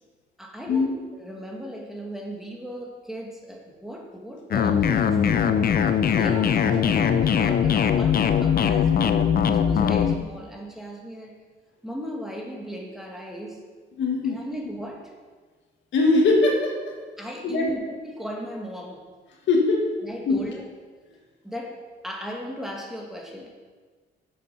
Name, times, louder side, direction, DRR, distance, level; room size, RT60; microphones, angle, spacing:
voice 1, 0.4-5.6 6.2-11.3 11.8-13.6 14.2-15.1 17.2-19.1 20.0-20.7 21.4-23.5, equal, ahead, -1 dB, 1.6 m, -37 dB
sound 1, 4.5-10.2, left 8 dB, 50° left, 0.5 m, -21 dB
voice 2, 6.1-6.4 9.9-10.0 14.0-14.4 15.9-17.0 17.4-17.7 19.5-19.9 20.3-20.5, left 3 dB, 70° left, 1 dB, 1.6 m, -22 dB
6.9 x 6.7 x 5.6 m, 1.4 s
cardioid pair, 90°, 20 cm